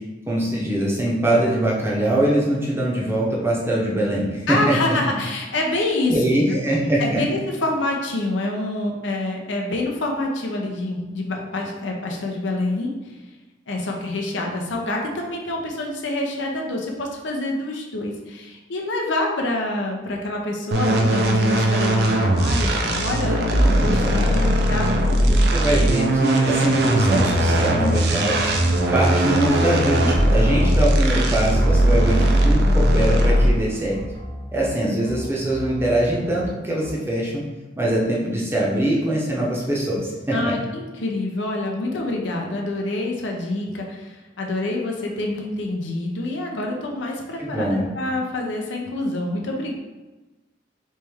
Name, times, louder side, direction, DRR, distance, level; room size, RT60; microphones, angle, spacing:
voice 1, 0.3-5.0 6.1-7.2 24.0-24.5 25.2-28.4 28.9-34.0 34.5-37.4 37.8-40.5 47.4-47.9, right 1 dB, 15° right, -5 dB, 0.7 m, -22 dB
voice 2, 4.5-6.6 7.0-12.9 13.7-24.4 24.7-25.1 25.8-25.9 40.3-49.7, left 2 dB, 85° left, 0 dB, 0.6 m, -27 dB
sound 1, 20.7-33.7, right 1 dB, 60° right, 0.4 m, -19 dB
sound 2, 27.9-29.3 29.7-31.1 31.5-32.9 33.3-34.7 35.0-36.5 36.8-36.9, equal, 90° right, 1.3 m, -38 dB
3.2 x 3.2 x 3.4 m, 1.2 s
head